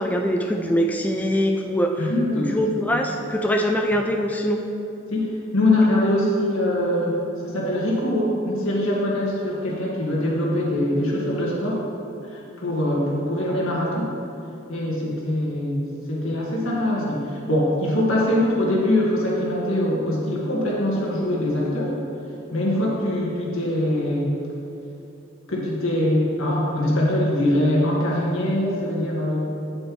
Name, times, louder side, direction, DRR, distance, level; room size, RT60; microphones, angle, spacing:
voice 1, 0.0-2.0 2.3-4.6, equal, 10° left, 3 dB, 0.3 m, -23 dB
voice 2, 2.0-2.5 5.1-7.1 7.4-11.8 12.2-14.1 14.7-15.8 16.1-21.9 22.5-24.3 25.5-29.5, left 1 dB, 85° left, -4 dB, 1.8 m, -23 dB
8.8 x 7.6 x 3.1 m, 2.8 s
head